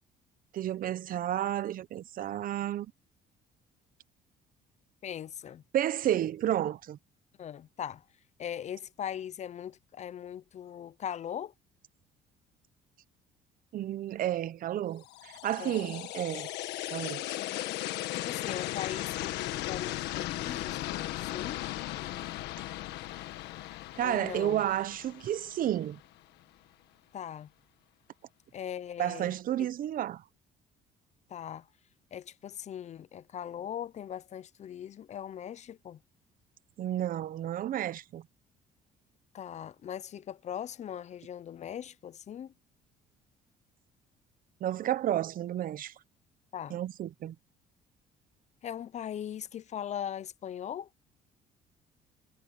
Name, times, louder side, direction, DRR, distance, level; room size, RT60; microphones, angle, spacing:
voice 1, 0.5-2.9 5.7-7.0 13.7-16.5 16.9-17.2 24.0-26.0 29.0-30.2 36.8-38.2 44.6-45.9 46.7-47.3, right 12 dB, 55° right, 0.8 m, -31 dB
voice 2, 5.0-5.6 7.4-8.0 8.4-11.5 15.6-15.9 17.4-17.8 18.1-21.6 22.0-22.4 24.0-24.6 27.1-27.5 28.5-29.3 29.6-29.7 31.3-31.6 32.1-36.0 39.3-42.5 46.5-46.8 48.6-50.9, left 9 dB, 45° left, 0.6 m, -40 dB
sound 1, 15.0-26.1, left 16 dB, 85° left, 1.5 m, -37 dB
cardioid pair, 110°, 17 cm